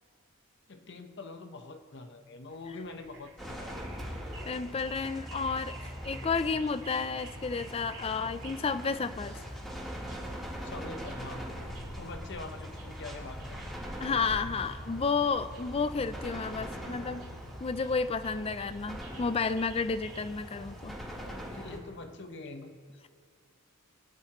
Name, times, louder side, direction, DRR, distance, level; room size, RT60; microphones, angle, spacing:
voice 1, 0.7-3.7 10.6-11.5 12.0-13.6 21.5-22.8, left 3 dB, 55° left, 7 dB, 0.9 m, -44 dB
sound 1, 2.5-20.3, right 3 dB, 70° right, 2.8 m, -55 dB
sound 2, 3.4-21.8, equal, ahead, 3.5 m, -42 dB
voice 2, 4.5-5.8 6.0-9.4 14.0-17.3 17.6-21.0, left 4 dB, 30° left, 13 dB, 0.4 m, -31 dB
sound 3, 11.2-20.9, equal, 35° right, 3.0 m, -53 dB
24.0 x 11.0 x 3.0 m, 2.1 s
head